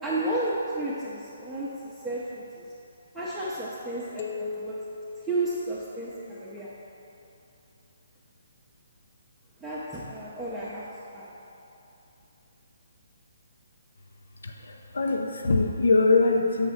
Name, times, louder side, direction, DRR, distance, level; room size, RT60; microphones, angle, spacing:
voice 1, 0.0-2.7 3.1-4.8 5.2-6.7 9.6-10.8 11.1-11.3, right 2 dB, 5° right, -10 dB, 0.6 m, -32 dB
sound 1, 4.2-6.6, left 4 dB, 40° left, 0.5 m, -39 dB
voice 2, 14.4-16.7, left 3 dB, 85° left, 3 dB, 0.7 m, -23 dB
7.1 x 3.3 x 5.7 m, 2.9 s
hypercardioid pair, 165°, 0 cm